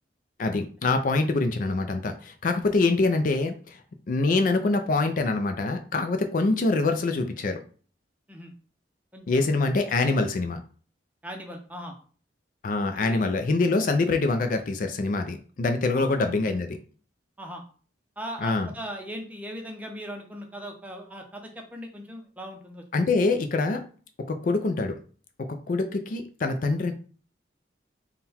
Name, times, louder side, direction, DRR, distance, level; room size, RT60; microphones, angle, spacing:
voice 1, 0.4-3.8 4.1-7.6 9.3-10.6 12.6-16.8 18.4-18.7 22.9-23.8 24.2-25.0 25.4-26.9, left 3 dB, 50° left, 6 dB, 0.4 m, -25 dB
voice 2, 9.1-9.5 11.2-11.9 13.0-13.2 15.9-16.1 17.4-17.6 18.2-22.8, equal, 10° right, 2 dB, 0.6 m, -39 dB
3.7 x 2.2 x 4.2 m, 0.41 s
head